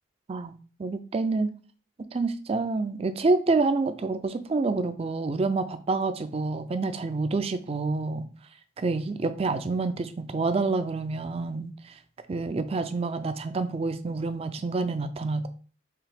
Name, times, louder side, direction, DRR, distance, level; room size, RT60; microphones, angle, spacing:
voice 1, 0.8-1.5 2.1-8.3 8.8-11.7 12.3-15.5, right 3 dB, 35° right, 11 dB, 0.4 m, -27 dB
4.7 x 3.2 x 3.5 m, 0.39 s
head